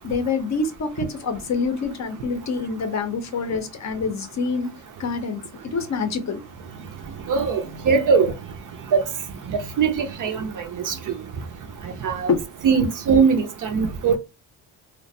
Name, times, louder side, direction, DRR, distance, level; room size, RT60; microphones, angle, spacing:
voice 1, 0.0-4.7 5.0-5.4 5.7-6.4 12.3-12.4, left 4 dB, 40° left, 0.6 m, -26 dB
voice 2, 7.3-8.3 8.9-9.0 9.5-10.9 12.0-12.3 12.6-14.2, right 5 dB, 45° right, 0.5 m, -21 dB
2.4 x 2.1 x 2.6 m
cardioid pair, 110°, 46 cm